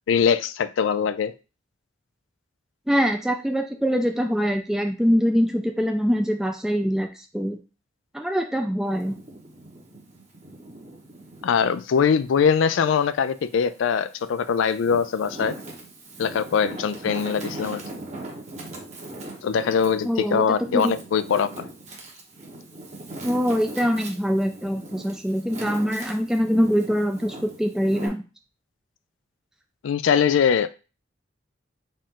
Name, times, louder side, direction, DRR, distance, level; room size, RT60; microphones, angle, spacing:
voice 1, 0.1-1.3 11.4-15.6 16.2-17.8 19.4-21.7 29.8-30.7, left 7 dB, 85° left, 13 dB, 0.4 m, -22 dB
voice 2, 2.9-7.1 7.3-7.6 8.1-9.2 20.0-20.9 23.2-28.2, equal, 5° right, 4 dB, 0.3 m, -23 dB
Wind, 8.9-11.7 12.2-13.5 14.1-28.1, right 2 dB, 35° right, 0.9 m, -40 dB
4.2 x 2.5 x 3.7 m, 0.32 s
head